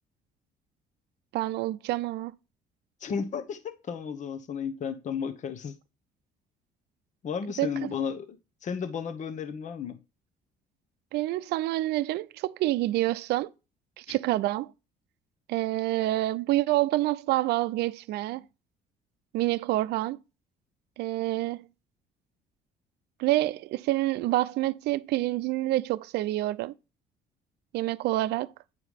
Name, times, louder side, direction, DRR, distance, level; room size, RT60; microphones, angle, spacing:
voice 1, 1.3-2.3 7.6-7.7 11.1-13.5 14.0-14.7 15.5-18.4 19.3-20.2 21.0-21.6 23.2-26.7 27.7-28.5, right 16 dB, 75° right, 0.5 m, -27 dB
voice 2, 3.0-5.8 7.2-10.0 14.1-14.2, left 6 dB, 45° left, 1.0 m, -33 dB
9.6 x 4.7 x 3.5 m
cardioid pair, 110°, 17 cm